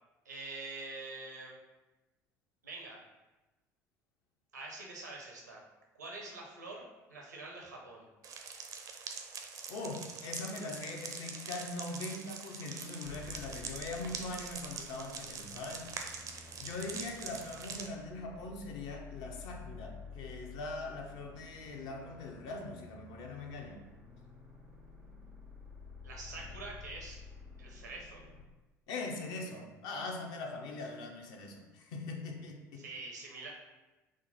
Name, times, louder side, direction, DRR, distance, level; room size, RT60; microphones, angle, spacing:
voice 1, 0.2-1.6 2.6-3.0 4.5-5.6 5.9-8.1 12.7-12.9 26.0-27.2 27.6-28.2 32.7-33.5, right 3 dB, 80° right, -1 dB, 0.7 m, -45 dB
sound 1, 8.2-17.9, right 6 dB, 40° right, 0.5 m, -44 dB
voice 2, 9.7-16.0 16.6-23.8 28.9-32.8, left 2 dB, 55° left, 2 dB, 0.6 m, -41 dB
sound 2, 13.0-28.4, left 5 dB, 90° left, 1.1 m, -51 dB
3.6 x 2.1 x 3.9 m, 1.1 s
figure-of-eight pair, 60°, 9 cm